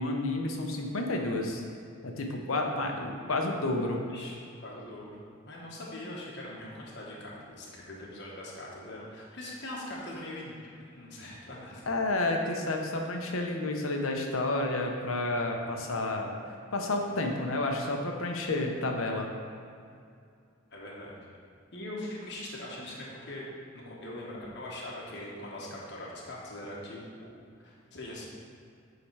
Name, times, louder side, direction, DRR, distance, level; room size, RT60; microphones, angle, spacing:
voice 1, 0.0-1.6 2.0-4.0 11.9-16.3 16.7-19.3, left 2 dB, 85° left, 2 dB, 0.9 m, -30 dB
voice 2, 2.7-3.4 4.1-5.2 5.5-10.6 11.0-11.9 20.7-21.3 21.7-23.4 23.7-28.3, left 1 dB, 55° left, -4 dB, 1.4 m, -42 dB
8.7 x 3.9 x 4.8 m, 2.4 s
head